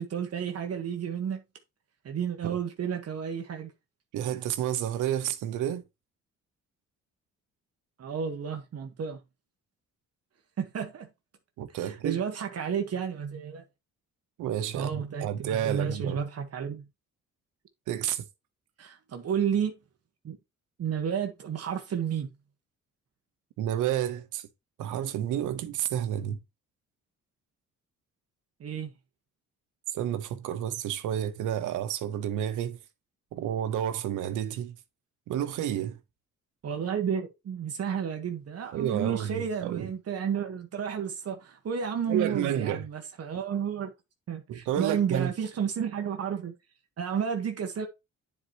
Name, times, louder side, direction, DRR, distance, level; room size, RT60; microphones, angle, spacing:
voice 1, 0.0-1.4 2.0-3.7 8.0-9.2 10.6-11.1 11.7-13.6 14.7-16.8 18.8-19.7 20.2-20.4 20.8-22.3 28.6-28.9 36.6-43.9 44.3-46.5 47.0-47.9, right 7 dB, 55° right, 1.4 m, -31 dB
voice 2, 4.1-5.8 11.6-12.2 14.4-16.2 17.9-18.2 23.6-24.5 24.8-26.4 29.9-32.8 33.3-34.7 35.3-36.0 38.7-39.9 42.1-42.8 44.5-45.3, right 10 dB, 90° right, 1.0 m, -30 dB
9.7 x 4.6 x 3.0 m
cardioid pair, 90°, 30 cm